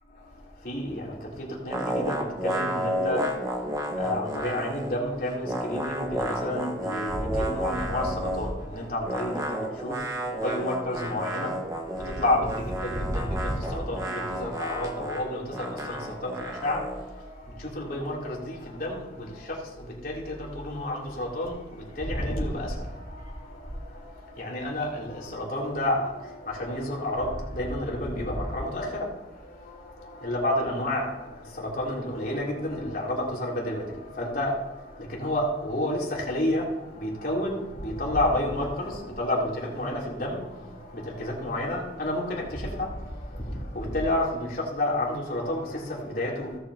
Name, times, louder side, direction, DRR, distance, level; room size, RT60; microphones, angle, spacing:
voice 1, 0.1-46.6, left 1 dB, 55° left, 3.1 m, -30 dB
sound 1, 1.7-5.0 5.2-8.6 9.0-17.1, right 1 dB, 20° right, 1.4 m, -32 dB
17.5 x 8.0 x 2.9 m
head